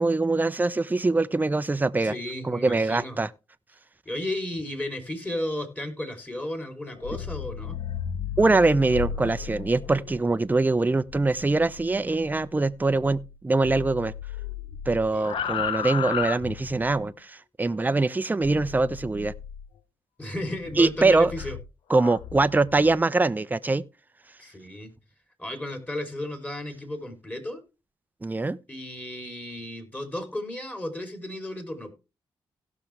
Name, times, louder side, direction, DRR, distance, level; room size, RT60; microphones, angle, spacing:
voice 1, 0.0-2.2 2.4-3.3 8.4-14.1 14.9-19.3 20.8-21.3 21.9-23.8 28.2-28.6, right 3 dB, 20° right, 0.6 m, -23 dB
voice 2, 2.0-3.2 4.0-7.8 15.1-15.7 20.2-21.6 24.4-24.9 25.4-27.6 28.7-31.9, left 1 dB, 15° left, 3.2 m, -34 dB
sound 1, 6.9-13.4 13.6-17.0 18.4-19.7 20.3-23.0, left 8 dB, 70° left, 0.8 m, -35 dB
17.0 x 6.0 x 3.3 m
cardioid pair, 60°, 9 cm